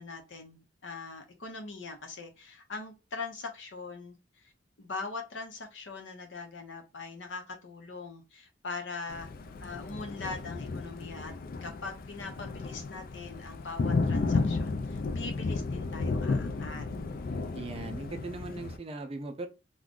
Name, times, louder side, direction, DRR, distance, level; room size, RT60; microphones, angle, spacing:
voice 1, 0.0-4.5 4.8-9.3 9.6-11.3 11.6-16.8 17.5-17.7, left 3 dB, 85° left, 0.8 m, -41 dB
Thunder, 9.1-18.8, left 3 dB, 50° left, 0.3 m, -33 dB
voice 2, 17.5-19.5, right 3 dB, 30° right, 0.4 m, -39 dB
2.5 x 2.3 x 3.6 m
head